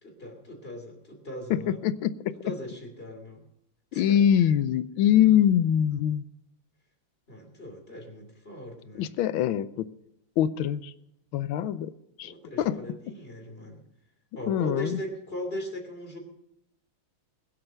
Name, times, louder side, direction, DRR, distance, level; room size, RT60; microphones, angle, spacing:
voice 1, 0.0-1.8 2.4-3.4 3.9-4.2 7.3-9.2 12.2-13.8 14.3-16.2, equal, 30° left, 2 dB, 3.2 m, -39 dB
voice 2, 1.5-2.3 3.9-6.2 9.0-9.9 10.4-10.9 11.3-11.9 12.2-12.3 12.6-12.8 14.5-15.0, left 10 dB, 85° left, 14 dB, 1.5 m, -23 dB
21.0 x 7.9 x 5.6 m, 0.83 s
omnidirectional pair, 2.2 m